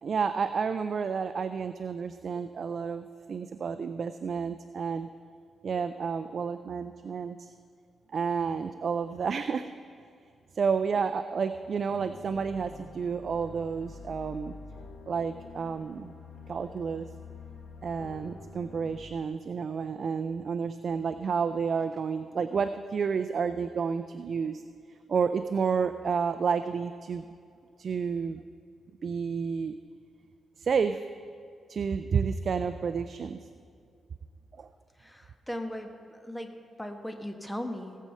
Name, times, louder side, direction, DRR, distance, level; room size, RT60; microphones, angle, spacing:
voice 1, 0.0-5.1 5.6-7.5 8.1-9.7 10.5-14.5 15.1-16.1 16.5-17.1 17.8-24.6 25.1-27.3 27.8-28.4 29.0-29.7 30.6-31.0 31.7-33.4 34.6-34.7, right 6 dB, 55° right, 10 dB, 0.4 m, -30 dB
sound 1, 11.7-19.0, left 4 dB, 65° left, 1.8 m, -47 dB
voice 2, 35.0-38.0, left 1 dB, 5° left, 6 dB, 1.1 m, -38 dB
17.5 x 7.5 x 5.5 m, 2.3 s
cardioid pair, 95°, 0 cm